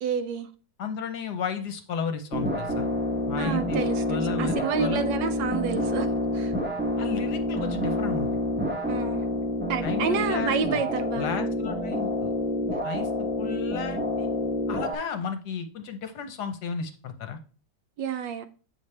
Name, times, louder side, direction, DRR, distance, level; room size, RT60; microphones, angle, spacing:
voice 1, 0.0-0.5 3.4-6.5 8.9-9.2 9.7-11.6 18.0-18.5, right 7 dB, 75° right, 1.2 m, -30 dB
voice 2, 0.8-2.9 3.3-3.8 4.1-5.0 7.0-8.3 9.8-10.8 11.2-12.3 12.8-14.3 14.7-17.4, left 6 dB, 65° left, 1.2 m, -33 dB
sound 1, 2.3-14.9, left 1 dB, 10° right, 0.7 m, -28 dB
8.4 x 5.9 x 3.2 m
omnidirectional pair, 2.1 m